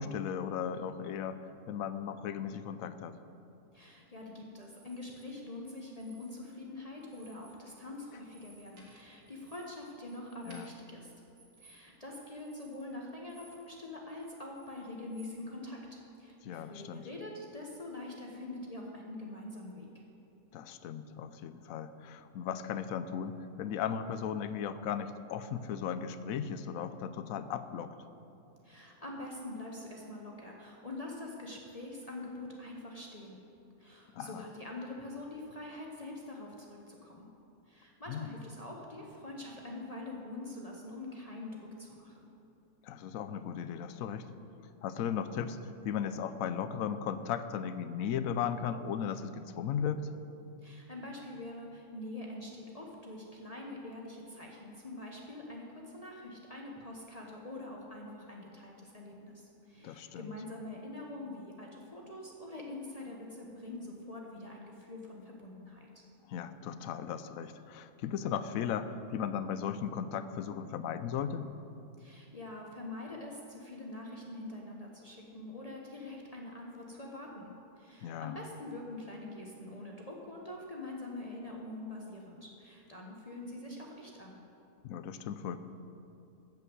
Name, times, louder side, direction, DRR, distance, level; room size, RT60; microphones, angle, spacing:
voice 1, 0.0-1.4 1.7-3.2 10.5-10.7 16.4-17.1 20.5-27.9 34.1-34.5 38.1-38.3 42.8-44.3 44.8-45.6 45.8-50.1 59.8-60.4 66.3-71.5 78.0-78.4 84.8-85.6, left 8 dB, 70° left, 12 dB, 1.0 m, -36 dB
voice 2, 3.7-11.1 11.6-19.9 28.6-33.4 33.8-37.3 37.7-42.3 50.6-65.9 72.0-84.4, left 2 dB, 30° left, -2 dB, 1.1 m, -45 dB
sound 1, 4.6-5.3 5.9-6.7 7.0-7.6 7.9-13.8 14.1-15.4, right 3 dB, 90° right, 2.2 m, -60 dB
14.0 x 5.4 x 7.9 m, 2.7 s
omnidirectional pair, 1.5 m